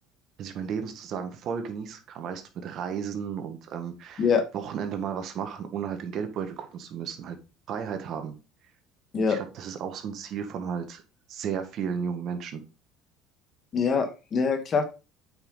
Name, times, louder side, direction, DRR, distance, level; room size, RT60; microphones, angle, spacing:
voice 1, 0.4-4.3 4.5-7.4 7.7-8.3 9.3-11.0 11.3-12.6, right 7 dB, 55° right, 1.7 m, -33 dB
voice 2, 13.7-14.8, left 5 dB, 40° left, 1.6 m, -24 dB
8.0 x 5.6 x 4.1 m
supercardioid pair, 100°, 0 cm